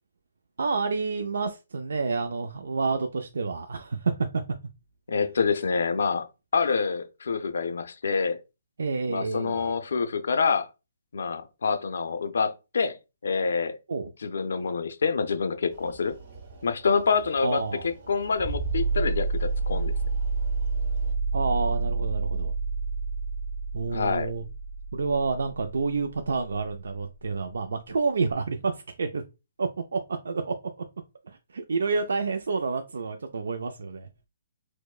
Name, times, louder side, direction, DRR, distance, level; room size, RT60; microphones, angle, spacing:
voice 1, 0.6-4.1 8.8-9.8 13.9-14.1 17.4-17.9 21.3-22.5 23.7-24.4 24.9-29.2 29.6-30.0 30.2-30.5 31.3-34.1, right 4 dB, 80° right, 0.3 m, -29 dB
voice 2, 5.1-6.3 6.5-8.4 9.1-10.7 11.1-13.0 13.2-13.8 14.2-16.1 16.6-17.6 18.1-19.9 23.9-24.3, left 5 dB, 75° left, 0.5 m, -26 dB
sound 1, 15.7-21.1, right 4 dB, 45° right, 0.9 m, -48 dB
sound 2, 18.4-26.8 28.3-28.4, right 3 dB, 30° right, 1.0 m, -29 dB
4.4 x 2.1 x 2.3 m
hypercardioid pair, 160°, 0 cm